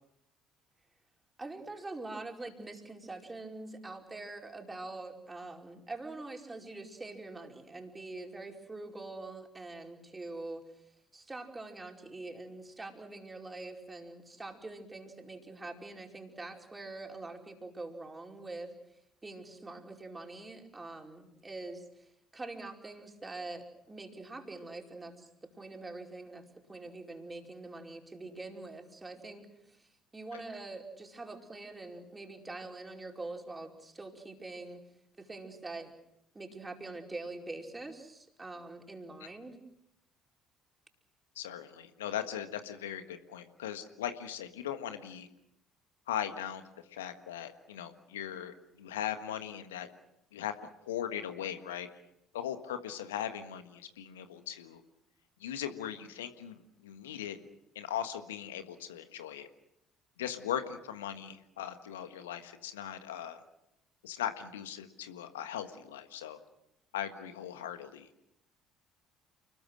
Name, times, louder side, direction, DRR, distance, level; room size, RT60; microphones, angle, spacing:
voice 1, 1.4-10.6 11.1-18.7 19.2-34.8 35.2-35.9 36.3-39.6, right 2 dB, 20° right, 2 dB, 5.0 m, -44 dB
voice 2, 41.3-45.3 46.1-46.6 46.9-49.9 50.3-51.9 52.3-54.8 55.4-57.4 57.7-59.5 60.2-63.4 64.0-66.4 66.9-68.1, left 10 dB, 75° left, 9 dB, 1.6 m, -39 dB
30.0 x 21.5 x 6.5 m, 0.80 s
figure-of-eight pair, 50°, 0 cm